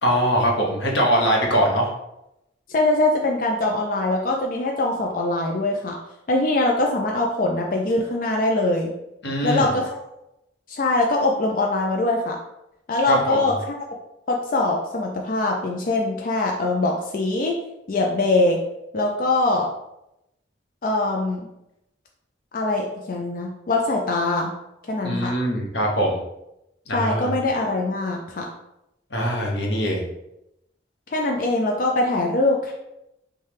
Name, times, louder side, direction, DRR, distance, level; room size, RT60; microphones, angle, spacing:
voice 1, 0.0-1.9 9.2-9.7 13.1-13.5 25.0-26.2 26.9-27.4 29.1-30.1, equal, 90° left, -1 dB, 1.1 m, -22 dB
voice 2, 2.7-6.0 6.3-8.9 9.4-10.0 10.7-12.4 12.9-13.5 14.3-17.6 17.9-18.6 18.9-19.7 20.8-21.4 22.5-24.5 24.9-25.3 26.9-28.5 31.1-32.7, left 2 dB, 50° left, 1 dB, 0.4 m, -22 dB
5.5 x 2.3 x 3.4 m, 0.87 s
head